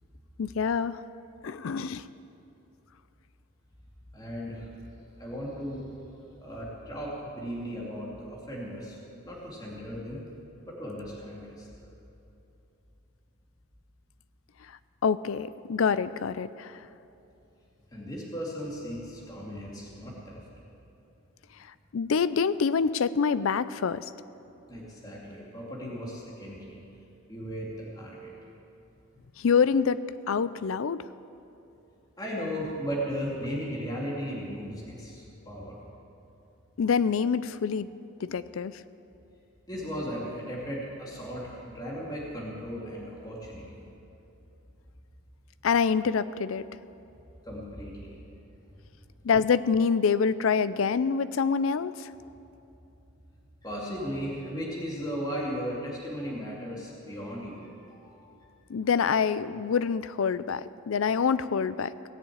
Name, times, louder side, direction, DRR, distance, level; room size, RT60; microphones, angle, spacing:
voice 1, 0.4-1.0 1.4-2.0 15.0-16.8 21.9-24.1 29.4-30.0 30.3-31.1 36.8-38.8 45.6-46.7 49.2-52.1 58.7-61.9, left 6 dB, 70° left, 15 dB, 0.4 m, -26 dB
voice 2, 4.1-4.7 5.2-5.9 6.4-9.0 9.2-10.2 10.7-11.7 17.9-20.4 24.7-26.8 27.3-28.3 32.2-35.8 39.7-43.9 47.4-48.2 53.6-58.4, equal, 20° left, -4 dB, 2.4 m, -36 dB
18.0 x 7.3 x 8.5 m, 2.8 s
head